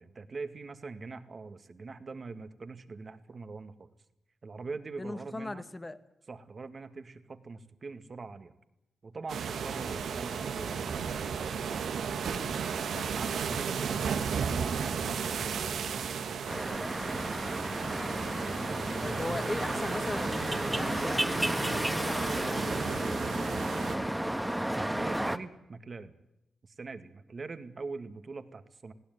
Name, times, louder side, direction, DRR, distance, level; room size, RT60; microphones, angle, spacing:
voice 1, 0.0-3.9 4.4-5.6 6.3-8.5 9.0-11.0 12.7-15.8 16.3-16.4 24.8-26.2 26.6-28.9, right 4 dB, 50° right, 2.1 m, -43 dB
voice 2, 5.0-6.0 12.3-12.5 12.9-13.1 17.8-18.1 19.0-22.8, left 2 dB, 30° left, 2.0 m, -39 dB
sound 1, 9.3-24.0, right 6 dB, 80° right, 1.7 m, -34 dB
sound 2, 16.5-25.4, right 1 dB, 10° right, 1.8 m, -32 dB
20.5 x 16.5 x 9.4 m
supercardioid pair, 45°, 0 cm